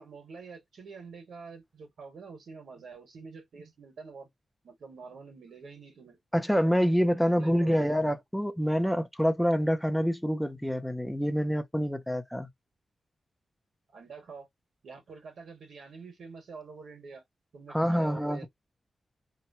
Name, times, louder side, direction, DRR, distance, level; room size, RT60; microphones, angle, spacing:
voice 1, 0.0-4.3 4.6-6.2 7.2-7.9 13.9-14.5 14.8-17.2 17.5-18.5, right 4 dB, 80° right, 1.5 m, -46 dB
voice 2, 6.3-12.5 17.7-18.5, equal, ahead, 0.5 m, -26 dB
2.9 x 2.2 x 2.6 m
wide cardioid pair, 170°, 0 cm